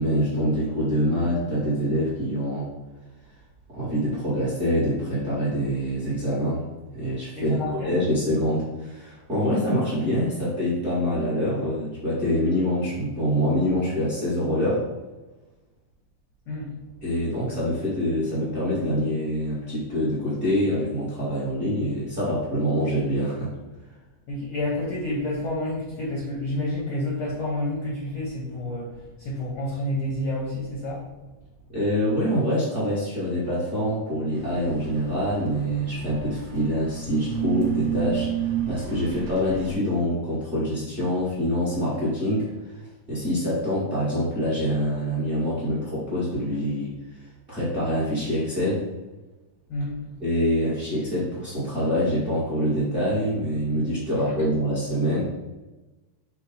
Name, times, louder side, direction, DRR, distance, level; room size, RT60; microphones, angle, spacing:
voice 1, 0.0-2.7 3.7-6.6 6.9-7.6 7.8-14.9 17.0-23.5 31.7-38.3 38.7-42.5 43.1-46.9 47.5-48.8 50.2-55.2, equal, 30° right, -9 dB, 1.0 m, -25 dB
voice 2, 7.3-7.9 16.5-16.7 24.3-31.0 49.7-50.0, left 1 dB, 70° left, -3 dB, 1.3 m, -29 dB
sound 1, 34.3-39.8, right 10 dB, 80° right, 1.6 m, -31 dB
4.5 x 2.3 x 4.0 m, 1.1 s
omnidirectional pair, 3.3 m